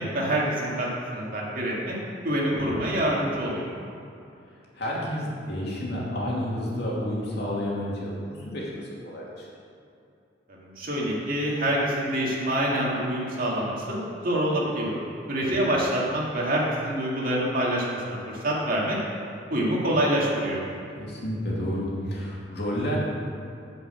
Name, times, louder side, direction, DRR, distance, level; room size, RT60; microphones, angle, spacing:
voice 1, 0.0-2.0 2.2-3.7 10.5-15.0 15.3-19.0 19.5-20.6, right 1 dB, 50° right, -4 dB, 2.3 m, -26 dB
voice 2, 4.7-8.7 9.0-9.5 21.0-23.0, equal, 65° left, -5 dB, 2.5 m, -30 dB
9.0 x 5.8 x 8.2 m, 2.6 s
head